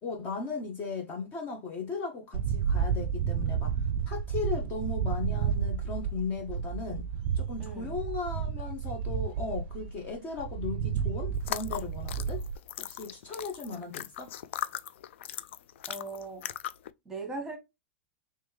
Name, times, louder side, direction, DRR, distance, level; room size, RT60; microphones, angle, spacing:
voice 1, 0.0-7.1 7.3-12.4 12.8-14.3, left 4 dB, 30° left, 0.9 m, -37 dB
sound 1, 2.3-12.6, right 7 dB, 55° right, 0.4 m, -31 dB
voice 2, 7.6-7.9 15.9-16.5 17.0-17.6, right 3 dB, 10° right, 1.3 m, -39 dB
sound 2, 11.4-16.9, left 12 dB, 70° left, 0.4 m, -39 dB
3.2 x 3.2 x 3.2 m
supercardioid pair, 145°, 7 cm